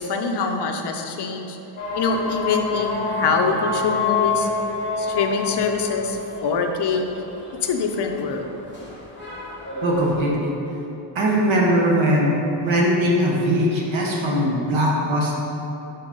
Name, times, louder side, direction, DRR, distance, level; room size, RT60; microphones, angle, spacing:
voice 1, 0.0-1.6 1.9-4.5 5.0-7.2 7.6-8.5, left 5 dB, 60° left, 4 dB, 0.7 m, -24 dB
sound 1, 1.8-10.2, left 3 dB, 25° left, 1.4 m, -28 dB
voice 2, 9.8-10.5 11.1-12.3 12.6-15.3, equal, 80° right, -3 dB, 1.4 m, -20 dB
5.7 x 4.6 x 5.2 m, 2.9 s
wide cardioid pair, 160°, 46 cm